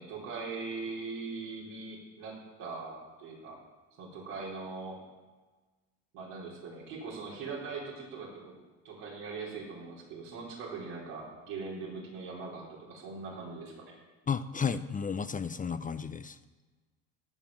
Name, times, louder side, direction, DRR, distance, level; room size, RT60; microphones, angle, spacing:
voice 1, 0.0-2.3 2.6-3.6 4.0-5.0 6.1-8.5 8.8-13.9, right 4 dB, 80° right, -4 dB, 4.5 m, -41 dB
voice 2, 14.3-16.4, left 6 dB, 25° left, 12 dB, 0.6 m, -33 dB
16.5 x 5.5 x 7.3 m, 1.3 s
supercardioid pair, 75°, 35 cm